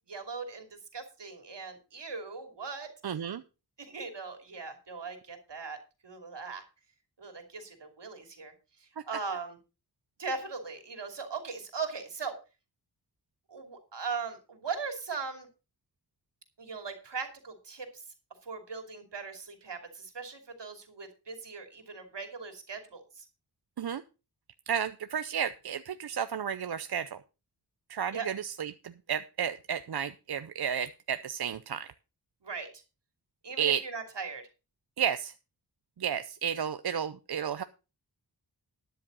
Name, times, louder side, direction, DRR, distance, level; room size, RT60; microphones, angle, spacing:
voice 1, 0.1-2.9 3.8-6.6 7.2-8.5 8.8-9.6 10.2-12.4 13.5-15.5 16.6-18.0 18.4-23.2 28.1-28.3 32.4-32.7 33.4-34.4, right 5 dB, 90° right, 5 dB, 2.9 m, -39 dB
voice 2, 3.0-3.4 23.8-24.0 24.7-27.2 27.9-31.9 33.6-33.8 35.0-35.3 36.0-37.6, right 8 dB, 65° right, 11 dB, 0.6 m, -32 dB
12.5 x 10.5 x 3.9 m, 0.31 s
wide cardioid pair, 90°, 41 cm